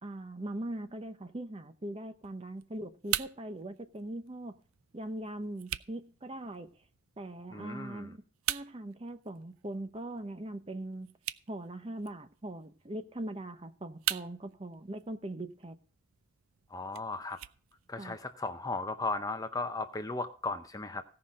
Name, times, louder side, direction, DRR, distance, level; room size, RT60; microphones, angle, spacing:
voice 1, 0.0-4.6 4.9-6.7 7.2-8.2 8.5-11.1 11.5-15.8 18.0-18.2, right 1 dB, 30° right, 0.8 m, -41 dB
sound 1, 2.2-18.2, right 13 dB, 90° right, 0.5 m, -43 dB
voice 2, 7.5-8.1 16.7-17.4 17.9-21.0, left 3 dB, 20° left, 0.6 m, -36 dB
16.5 x 5.8 x 5.2 m
head